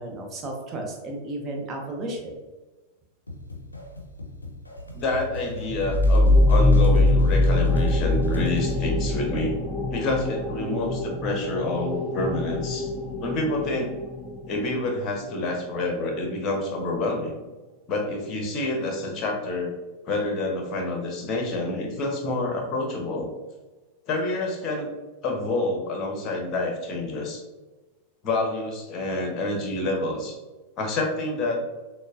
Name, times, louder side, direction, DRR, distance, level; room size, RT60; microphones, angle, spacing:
voice 1, 0.0-2.3, right 1 dB, 25° right, 1 dB, 0.8 m, -33 dB
sound 1, 3.3-8.9, left 2 dB, 80° left, 0.5 m, -37 dB
voice 2, 4.9-9.5 9.9-12.9 13.2-13.9 14.5-17.4 17.9-19.7 20.1-23.3 24.1-24.9 25.2-27.4 28.2-30.4 30.8-31.6, left 2 dB, 35° left, 1 dB, 0.9 m, -28 dB
sound 2, 5.7-15.0, left 2 dB, 15° left, 0.5 m, -23 dB
6.2 x 2.1 x 2.5 m, 1.2 s
figure-of-eight pair, 90°, 0 cm